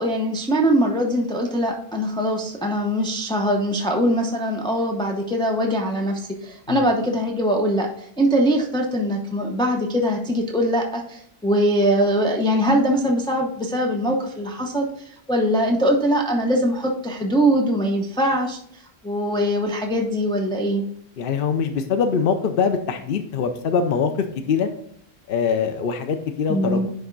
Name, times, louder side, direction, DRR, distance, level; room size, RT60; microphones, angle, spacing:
voice 1, 0.0-14.9 15.3-18.6 19.0-20.8 26.5-26.9, equal, 5° left, 1 dB, 0.7 m, -22 dB
voice 2, 21.2-24.1 24.5-24.7 25.3-26.9, left 6 dB, 65° left, 7 dB, 0.8 m, -23 dB
10.0 x 3.5 x 3.9 m, 0.69 s
omnidirectional pair, 1.0 m